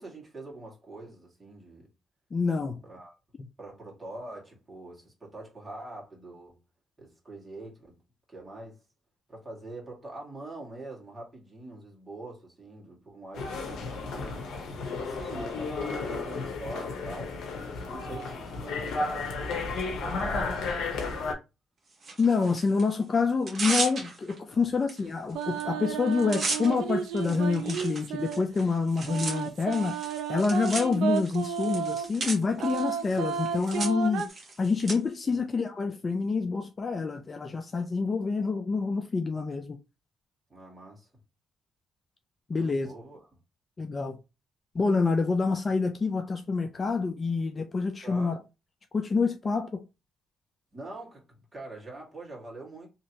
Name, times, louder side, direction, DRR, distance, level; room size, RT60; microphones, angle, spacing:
voice 1, 0.0-1.9 2.8-3.1 3.6-6.6 7.0-8.0 8.3-8.8 9.3-14.5 14.8-19.4 19.9-21.3 24.5-24.7 35.2-35.4 40.5-41.1 42.5-43.3 48.0-48.4 50.7-51.2 51.5-52.9, right 2 dB, 20° right, 1.7 m, -44 dB
voice 2, 2.3-2.8 22.2-30.0 30.3-34.3 34.6-39.8 42.5-42.9 43.8-44.2 44.7-48.4 48.9-49.8, left 4 dB, 35° left, 0.4 m, -27 dB
sound 1, 13.3-21.3, left 3 dB, 75° left, 0.8 m, -33 dB
Tearing, 22.0-22.8 23.3-24.4 24.9-25.0 25.3-25.6 25.9-34.9, right 3 dB, 40° right, 1.4 m, -36 dB
sound 2, 25.3-28.4 29.1-32.1 32.6-34.3, right 8 dB, 85° right, 0.4 m, -32 dB
3.0 x 2.8 x 2.8 m
cardioid pair, 90°, 0 cm